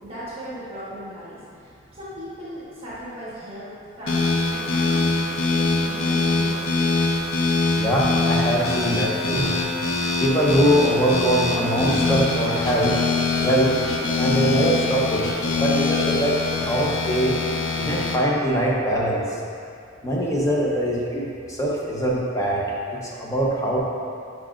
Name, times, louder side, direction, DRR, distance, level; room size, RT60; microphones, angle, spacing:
voice 1, 0.0-5.2 5.5-6.8, equal, 30° right, -9 dB, 1.3 m, -37 dB
sound 1, 4.1-18.2, left 3 dB, 75° left, 0.7 m, -23 dB
voice 2, 7.7-9.5 10.2-13.0 13.4-13.7 14.2-15.3 15.5-17.4 17.8-19.4 20.0-22.6 22.9-23.8, equal, 15° left, -4 dB, 0.8 m, -22 dB
8.6 x 4.8 x 2.4 m, 2.3 s
head